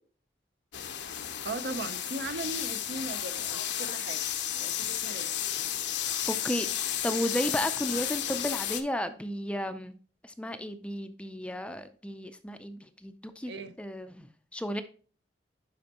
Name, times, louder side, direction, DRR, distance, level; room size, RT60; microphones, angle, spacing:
sound 1, 0.7-8.8, left 10 dB, 70° left, 0.7 m, -33 dB
voice 1, 1.4-4.2 4.5-5.3 13.5-13.8, right 2 dB, 65° right, 0.6 m, -38 dB
voice 2, 6.3-6.7 7.0-9.9 10.2-13.5 13.8-14.8, equal, 5° left, 0.4 m, -33 dB
10.5 x 4.4 x 2.9 m
head